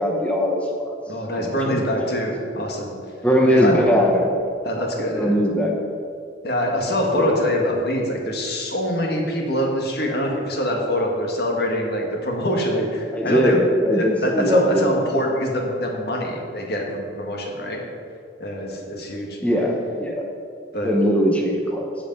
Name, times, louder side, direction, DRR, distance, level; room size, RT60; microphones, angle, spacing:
voice 1, 0.0-0.9 1.3-1.8 3.2-4.3 5.1-5.7 7.1-7.4 13.1-15.0 19.4-20.3 20.8-21.9, equal, 5° left, 0 dB, 0.8 m, -20 dB
voice 2, 1.1-2.9 3.5-3.8 4.6-5.4 6.4-13.6 13.9-17.8 18.4-19.4 20.7-20.9, equal, 60° left, 0 dB, 1.7 m, -24 dB
15.5 x 5.2 x 5.4 m, 2.3 s
head